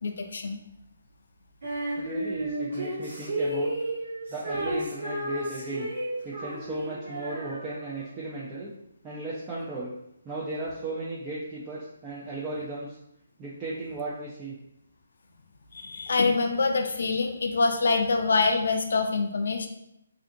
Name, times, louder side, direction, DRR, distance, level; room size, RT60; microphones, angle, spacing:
voice 1, 0.0-0.6 15.7-19.7, left 4 dB, 65° left, 4 dB, 0.4 m, -25 dB
Female singing, 1.6-8.1, right 1 dB, 65° right, 1.3 m, -32 dB
voice 2, 2.0-3.7 4.3-5.9 6.2-8.7 9.0-9.9 10.2-13.0 13.4-14.5, right 2 dB, 15° right, -7 dB, 0.4 m, -35 dB
2.5 x 2.4 x 2.6 m, 0.80 s
hypercardioid pair, 155°, 0 cm